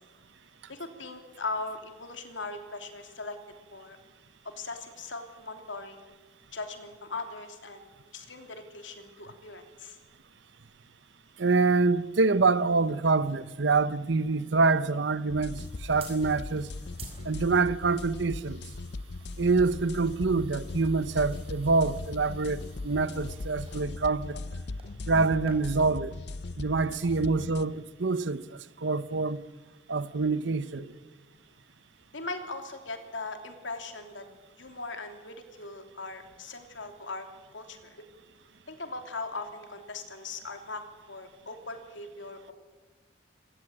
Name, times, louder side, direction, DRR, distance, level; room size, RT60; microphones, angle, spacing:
voice 1, 0.7-3.4 3.7-4.0 4.4-6.1 6.5-7.9 8.1-10.0 25.4-25.5 30.8-30.9 32.1-34.3 34.6-38.0 38.7-40.8 41.1-42.5, left 3 dB, 80° left, 3.1 m, -39 dB
voice 2, 11.4-16.7 17.2-18.6 19.4-24.4 25.1-26.1 26.6-29.4 29.9-30.9, right 3 dB, 75° right, 0.8 m, -26 dB
sound 1, 14.6-25.5, right 5 dB, 30° right, 5.0 m, -54 dB
sound 2, 15.3-27.7, left 2 dB, 60° left, 0.6 m, -39 dB
25.0 x 18.5 x 8.8 m
head